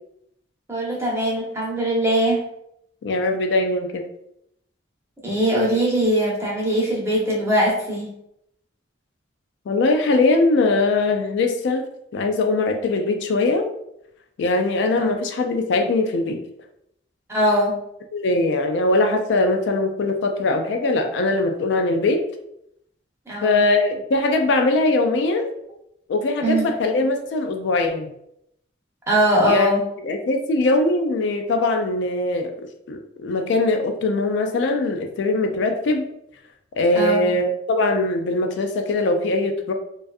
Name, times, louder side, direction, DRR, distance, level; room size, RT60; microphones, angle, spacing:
voice 1, 0.7-2.4 5.2-8.1 15.0-15.1 17.3-17.7 23.3-23.6 26.4-26.6 29.1-29.8 37.0-37.3, equal, 15° right, -4 dB, 0.6 m, -21 dB
voice 2, 3.0-4.0 9.7-11.8 12.1-13.7 14.4-16.4 18.1-22.2 23.4-25.5 26.1-28.1 29.4-29.7 30.0-32.5 32.9-36.1 36.8-39.7, left 2 dB, 65° left, 4 dB, 0.3 m, -21 dB
2.5 x 2.3 x 2.3 m, 0.78 s
head